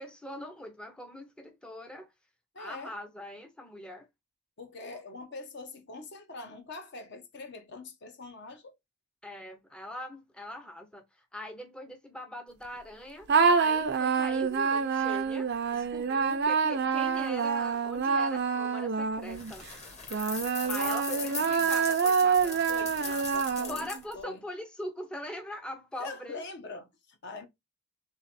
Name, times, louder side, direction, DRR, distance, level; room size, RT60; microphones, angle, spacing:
voice 1, 0.0-2.1 2.6-4.1 9.2-11.0 11.3-13.3 13.5-19.7 20.7-22.6 23.7-26.4, left 1 dB, 5° left, 0.6 m, -41 dB
voice 2, 2.5-2.9 4.6-8.7 20.4-21.7 22.7-23.9 24.1-24.4 26.0-27.5, left 3 dB, 55° left, 0.9 m, -44 dB
sound 1, 13.3-19.5 20.1-24.0, right 5 dB, 50° right, 0.5 m, -27 dB
sound 2, 19.3-24.1, left 5 dB, 30° left, 1.1 m, -39 dB
3.3 x 3.2 x 4.0 m
head